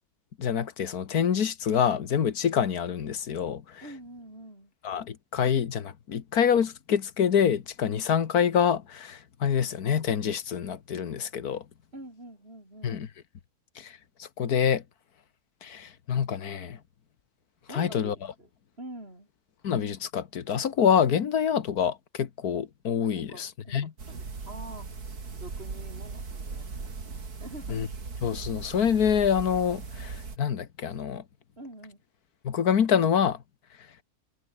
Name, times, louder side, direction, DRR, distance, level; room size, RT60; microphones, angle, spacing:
voice 1, 0.4-3.8 4.8-11.6 12.8-13.1 13.8-13.9 14.2-14.8 15.6-16.8 17.7-18.2 19.6-23.9 27.7-27.9 28.2-31.2 32.4-33.4, left 8 dB, 90° left, 1.9 m, -26 dB
voice 2, 3.8-4.7 11.9-13.0 17.7-18.5 18.8-19.3 23.1-24.9 25.3-27.8 31.6-32.0, right 1 dB, 40° right, 8.4 m, -46 dB
sound 1, 24.0-30.4, right 4 dB, 85° right, 3.4 m, -39 dB
omnidirectional pair, 1.6 m